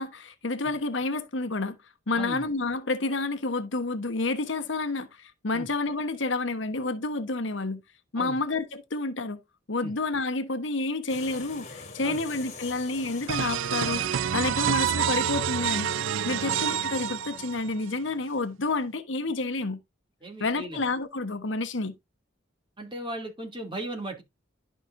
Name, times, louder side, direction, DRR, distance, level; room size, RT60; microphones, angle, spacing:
voice 1, 0.0-1.8 2.1-7.8 8.1-9.4 9.7-15.9 16.2-19.8 20.4-21.9, left 3 dB, 70° left, 1.1 m, -29 dB
voice 2, 2.1-2.4 5.5-5.7 8.2-8.4 9.8-9.9 12.0-12.2 14.6-14.7 16.4-16.5 20.2-20.8 22.8-24.2, right 1 dB, 25° right, 2.7 m, -37 dB
sound 1, 11.1-17.7, left 4 dB, 35° left, 2.0 m, -46 dB
sound 2, 13.3-17.9, right 9 dB, 80° right, 0.5 m, -28 dB
11.5 x 5.9 x 2.6 m
head